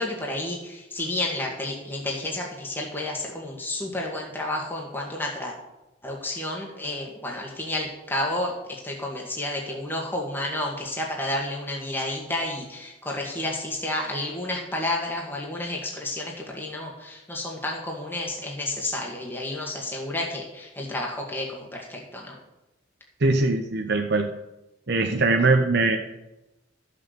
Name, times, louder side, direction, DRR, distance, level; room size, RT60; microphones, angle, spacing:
voice 1, 0.0-5.6 6.0-22.4, left 1 dB, 10° left, -1 dB, 1.8 m, -31 dB
voice 2, 23.2-24.3 24.9-26.0, right 3 dB, 55° right, 4 dB, 0.9 m, -21 dB
13.5 x 6.5 x 6.8 m, 0.95 s
head